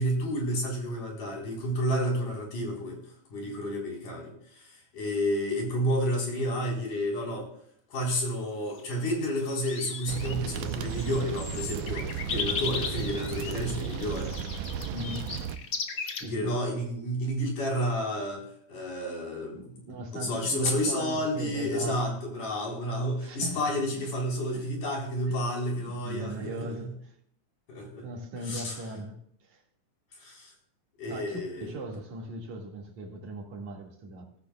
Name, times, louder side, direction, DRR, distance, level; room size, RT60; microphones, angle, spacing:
voice 1, 0.0-3.0 3.3-7.5 7.9-14.3 16.2-19.7 20.1-26.8 27.7-28.1 28.4-28.8 30.1-30.5 31.0-31.7, equal, 85° left, 5.6 m, -30 dB
sound 1, 8.7-8.9 9.5-16.2, left 5 dB, 55° left, 1.1 m, -37 dB
sound 2, 10.1-15.6, right 8 dB, 85° right, 2.2 m, -35 dB
voice 2, 14.9-15.4 16.2-16.5 18.8-18.9 19.5-22.0 23.2-23.6 23.9-24.1 24.5-24.7 25.3-25.4 25.7-27.1 28.0-29.6 31.1-34.3, right 1 dB, 70° right, 3.3 m, -39 dB
17.0 x 15.0 x 2.3 m
omnidirectional pair, 3.5 m